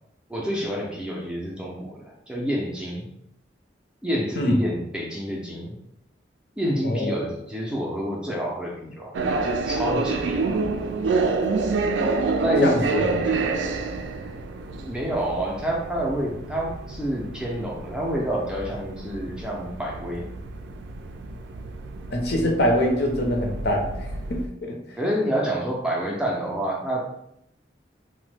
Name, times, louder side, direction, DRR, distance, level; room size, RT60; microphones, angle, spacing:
voice 1, 0.3-3.1 4.0-5.8 6.6-10.6 12.4-12.8 13.5-13.6 14.7-20.3 25.0-27.0, equal, 5° right, -3 dB, 0.4 m, -28 dB
voice 2, 6.8-7.3 12.6-13.1 22.1-24.8, equal, 60° left, 0 dB, 0.6 m, -24 dB
sound 1, 9.1-24.5, right 3 dB, 80° right, 0.3 m, -28 dB
2.9 x 2.1 x 3.2 m, 0.79 s
head